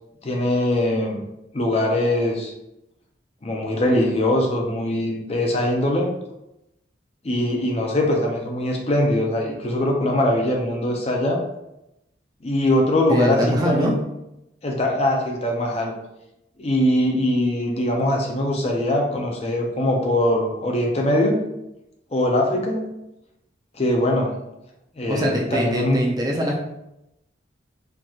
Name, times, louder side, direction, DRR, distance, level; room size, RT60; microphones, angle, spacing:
voice 1, 0.2-1.2 1.5-2.5 3.4-6.1 7.2-11.4 12.4-14.0 14.6-15.9 16.6-21.5 22.1-22.9 23.8-24.3 25.0-26.0, left 1 dB, 30° left, 1 dB, 0.6 m, -22 dB
voice 2, 13.1-13.9 25.1-26.6, equal, 20° right, -1 dB, 0.4 m, -23 dB
4.4 x 2.9 x 2.4 m, 0.87 s
head